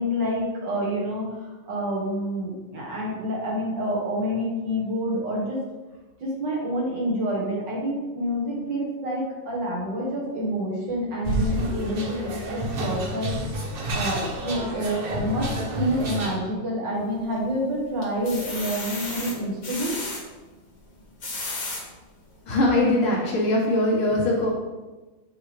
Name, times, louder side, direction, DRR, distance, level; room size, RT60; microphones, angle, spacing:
voice 1, 0.0-1.4 1.7-5.6 6.2-13.3 13.9-15.5 15.8-20.0, equal, 60° right, -3 dB, 2.1 m, -28 dB
sound 1, 11.2-16.4, right 1 dB, 75° right, 0.5 m, -29 dB
sound 2, 16.9-17.5 18.0-20.2 21.0-21.8 22.4-22.5 22.9-23.0, left 2 dB, 45° left, 1.6 m, -34 dB
voice 2, 22.5-24.5, left 1 dB, 85° left, -4 dB, 2.5 m, -21 dB
7.5 x 4.8 x 3.3 m, 1.2 s
omnidirectional pair, 2.3 m